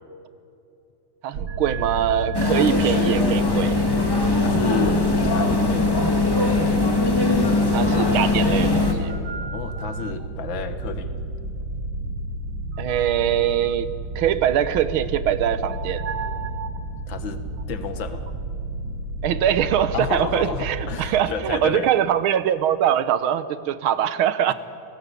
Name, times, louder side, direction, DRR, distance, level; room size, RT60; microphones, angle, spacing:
voice 1, 1.2-3.9 7.7-9.1 12.8-16.1 19.2-24.5, right 10 dB, 90° right, 14 dB, 1.8 m, -23 dB
sound 1, 1.3-21.3, right 2 dB, 65° right, 1.7 m, -31 dB
sound 2, 2.3-8.9, left 3 dB, 10° left, 2.1 m, -20 dB
voice 2, 4.4-6.3 9.5-11.1 16.9-17.4 17.7-18.2 19.9-21.9, left 6 dB, 70° left, 9 dB, 2.0 m, -31 dB
29.0 x 18.5 x 8.4 m, 2.7 s
omnidirectional pair, 2.2 m